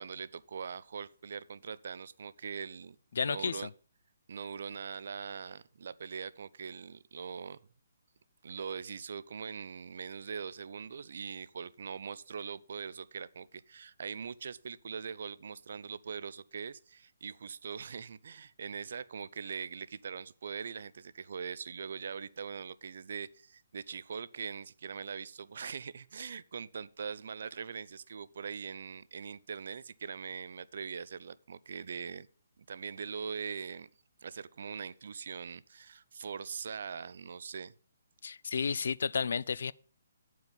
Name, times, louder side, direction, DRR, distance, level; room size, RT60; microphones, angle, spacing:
voice 1, 0.0-3.7 4.3-7.6 8.4-32.3 32.7-33.9 34.2-37.7, right 6 dB, 60° right, 0.5 m, -42 dB
voice 2, 3.1-3.6 38.2-39.7, left 6 dB, 70° left, 0.4 m, -32 dB
9.6 x 4.7 x 7.0 m
hypercardioid pair, 155°, 0 cm